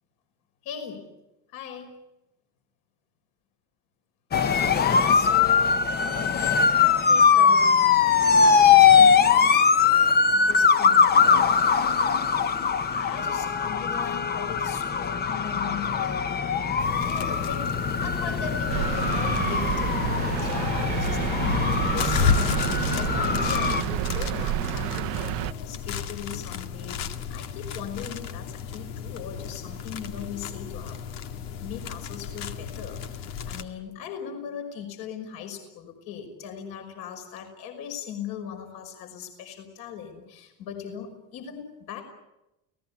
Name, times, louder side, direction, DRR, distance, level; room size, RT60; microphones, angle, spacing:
voice 1, 0.6-1.0 1.5-1.9 4.6-5.9 6.7-7.9 8.4-11.6 12.1-12.5 12.8-16.3 16.9-17.7 18.0-31.0 31.3-42.0, left 8 dB, 65° left, 5 dB, 5.7 m, -39 dB
sound 1, 4.3-23.8, left 6 dB, 25° left, 0.9 m, -21 dB
sound 2, 16.8-33.6, left 6 dB, 85° left, 2.2 m, -33 dB
sound 3, 18.7-25.5, right 17 dB, 65° right, 0.8 m, -30 dB
30.0 x 18.5 x 8.5 m, 0.94 s
cardioid pair, 140°, 39 cm